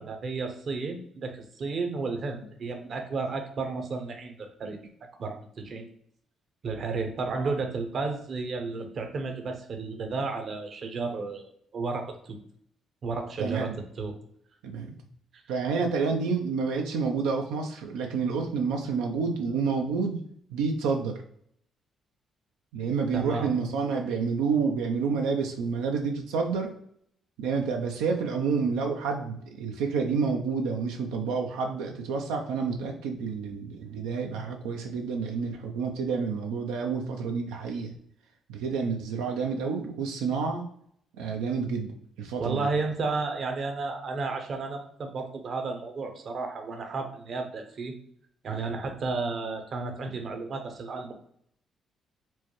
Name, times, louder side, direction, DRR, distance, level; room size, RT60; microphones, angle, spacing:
voice 1, 0.0-4.8 5.2-5.9 6.6-12.4 13.0-14.2 23.1-23.5 42.4-47.9 48.4-51.1, right 4 dB, 60° right, 5 dB, 0.8 m, -32 dB
voice 2, 13.4-13.8 14.6-15.0 15.5-20.2 20.5-21.2 22.7-26.7 27.4-37.9 38.5-40.6 41.2-42.7, right 5 dB, 90° right, 2 dB, 0.4 m, -29 dB
4.4 x 2.2 x 3.0 m, 0.65 s
supercardioid pair, 60°, 0 cm